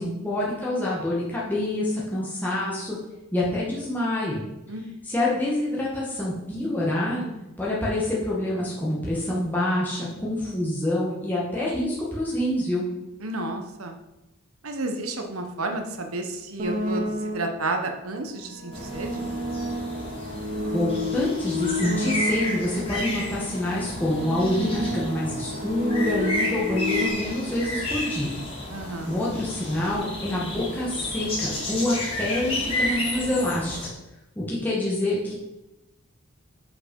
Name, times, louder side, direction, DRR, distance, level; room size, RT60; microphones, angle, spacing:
voice 1, 0.0-3.0 3.3-4.4 5.0-7.2 7.6-12.9 20.7-28.3 29.1-33.8 34.4-35.3, left 1 dB, 10° left, -6 dB, 1.9 m, -26 dB
voice 2, 13.2-13.9 14.6-19.3 28.7-29.2, right 2 dB, 85° right, 5 dB, 1.3 m, -31 dB
sound 1, 16.6-17.7 18.4-22.9 23.7-27.1, left 1 dB, 40° right, 1.0 m, -30 dB
sound 2, 18.7-33.9, left 1 dB, 25° left, 2.6 m, -32 dB
8.6 x 5.8 x 5.4 m, 0.95 s
head